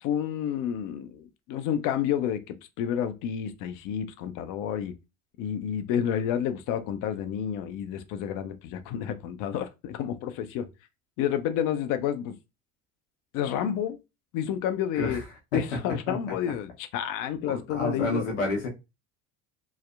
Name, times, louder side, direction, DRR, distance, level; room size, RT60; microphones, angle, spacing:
voice 1, 0.0-4.9 5.4-10.7 11.2-12.4 13.3-14.0 14.3-15.2 15.5-18.2, left 9 dB, 60° left, 0.6 m, -30 dB
voice 2, 14.9-15.3 15.5-15.8 16.1-16.3 17.5-18.7, left 2 dB, 90° left, 0.8 m, -30 dB
2.7 x 2.0 x 2.3 m
hypercardioid pair, 75°, 36 cm